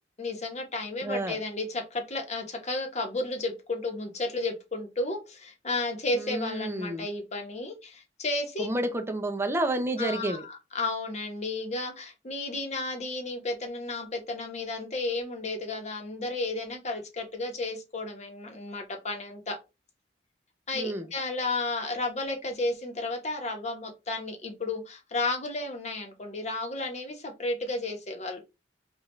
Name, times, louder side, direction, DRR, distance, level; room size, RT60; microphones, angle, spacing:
voice 1, 0.2-8.7 10.0-19.6 20.7-28.4, left 2 dB, 40° left, 1.1 m, -33 dB
voice 2, 1.0-1.4 6.1-7.1 8.6-10.5 20.7-21.1, right 1 dB, 15° right, 0.6 m, -30 dB
5.2 x 2.6 x 3.1 m
head